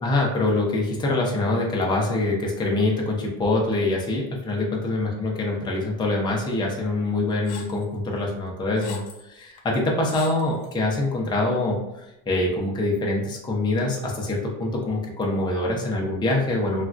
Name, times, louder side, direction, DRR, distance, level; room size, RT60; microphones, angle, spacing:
voice 1, 0.0-16.8, left 2 dB, 10° left, -2 dB, 0.4 m, -25 dB
sound 1, 7.4-7.8 8.5-9.2 9.6-9.7 10.1-10.7, left 5 dB, 75° left, 0.7 m, -41 dB
3.2 x 2.4 x 2.4 m, 0.91 s
cardioid pair, 120°, 47 cm